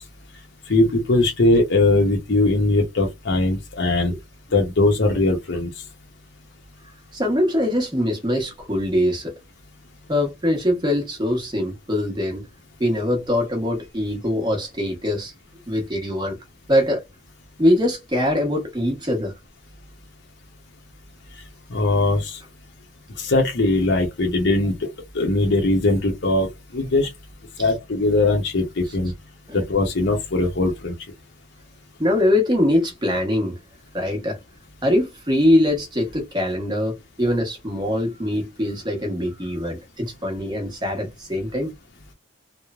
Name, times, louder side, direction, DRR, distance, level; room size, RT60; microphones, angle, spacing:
voice 1, 0.7-4.1 4.5-5.7 21.7-22.4 23.2-24.7 25.1-26.5 26.7-27.1 27.6-29.1 29.5-30.9, left 2 dB, 60° left, 0.7 m, -20 dB
voice 2, 7.1-9.4 10.1-12.4 12.8-15.3 15.7-16.4 16.7-17.0 17.6-19.3 27.6-27.7 29.5-29.6 32.0-33.6 33.9-34.4 34.8-41.7, left 1 dB, 20° right, 0.9 m, -22 dB
3.0 x 2.0 x 2.3 m
head